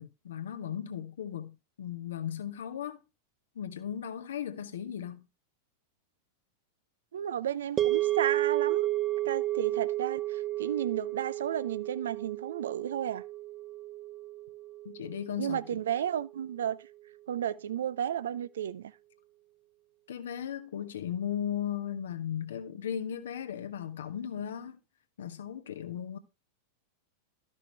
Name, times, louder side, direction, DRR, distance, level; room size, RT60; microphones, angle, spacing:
voice 1, 0.0-3.0 3.5-5.2 14.8-15.8 20.1-24.8 25.2-26.2, left 9 dB, 65° left, 1.4 m, -36 dB
voice 2, 7.1-8.9 9.2-13.2 15.4-16.9 17.3-18.9, right 10 dB, 65° right, 0.6 m, -33 dB
sound 1, 7.8-16.1, right 15 dB, 25° right, 0.7 m, -32 dB
13.0 x 6.2 x 4.6 m
figure-of-eight pair, 90°, 0 cm